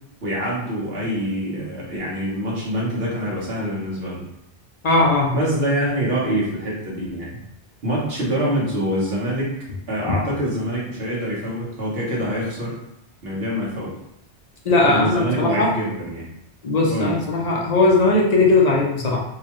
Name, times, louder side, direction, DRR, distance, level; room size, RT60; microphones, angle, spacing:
voice 1, 0.2-4.3 5.3-7.4 7.8-9.5 9.9-12.8 13.2-13.9 14.8-16.3 16.9-17.1, right 1 dB, 60° right, -6 dB, 1.5 m, -25 dB
voice 2, 4.8-5.4 14.7-15.7 16.6-19.2, left 2 dB, 45° left, -2 dB, 0.6 m, -18 dB
4.6 x 2.3 x 3.0 m, 0.81 s
omnidirectional pair, 1.2 m